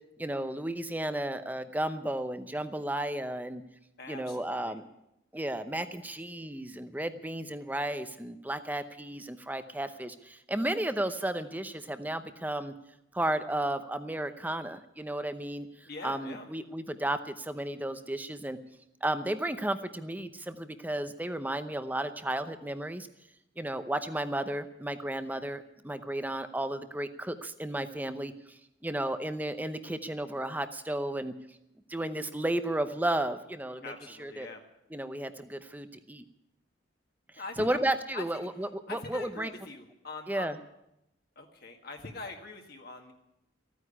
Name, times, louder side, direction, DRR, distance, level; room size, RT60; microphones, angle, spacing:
voice 1, 0.2-3.6 4.1-4.8 5.3-12.7 13.1-18.6 19.0-23.1 23.6-31.3 31.9-33.9 34.2-34.5 34.9-36.2 37.6-39.5 40.3-40.6, right 1 dB, 10° right, 11 dB, 0.7 m, -33 dB
voice 2, 4.0-4.8 15.9-16.5 33.8-34.6 37.4-37.7 38.1-38.4 38.9-40.5 41.4-43.1, left 3 dB, 50° left, 3 dB, 1.7 m, -43 dB
15.0 x 9.4 x 10.0 m, 0.86 s
head